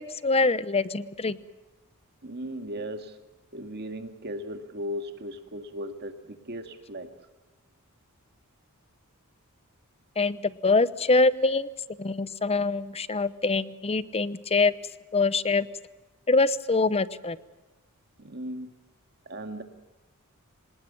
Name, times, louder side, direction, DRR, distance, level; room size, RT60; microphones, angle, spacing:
voice 1, 0.0-1.4 10.2-11.7 12.0-14.7 15.1-15.7 16.3-17.4, left 3 dB, 25° left, 16 dB, 0.8 m, -24 dB
voice 2, 2.2-3.2 3.5-7.1 18.2-18.7 19.3-19.6, equal, 50° right, 6 dB, 2.2 m, -37 dB
25.5 x 19.5 x 7.2 m, 1.1 s
head